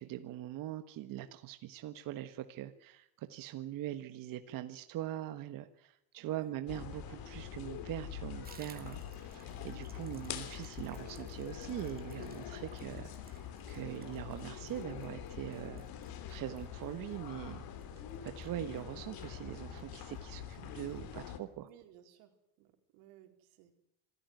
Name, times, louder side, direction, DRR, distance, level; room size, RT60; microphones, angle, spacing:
voice 1, 0.0-15.8 16.3-17.6 18.2-21.7, right 12 dB, 45° right, 9 dB, 1.4 m, -42 dB
voice 2, 6.2-6.6 21.6-23.8, right 11 dB, 85° right, 6 dB, 4.2 m, -60 dB
sound 1, 6.7-21.4, left 9 dB, 50° left, 3.2 m, -45 dB
Water tap faucet / Bathtub (filling or washing), 8.4-19.4 19.7-19.9 20.1-20.2 20.5-21.0 21.3-21.4 21.7-21.8, right 5 dB, 20° right, 2.6 m, -61 dB
26.0 x 14.0 x 9.5 m, 0.79 s
cardioid pair, 150°, 45 cm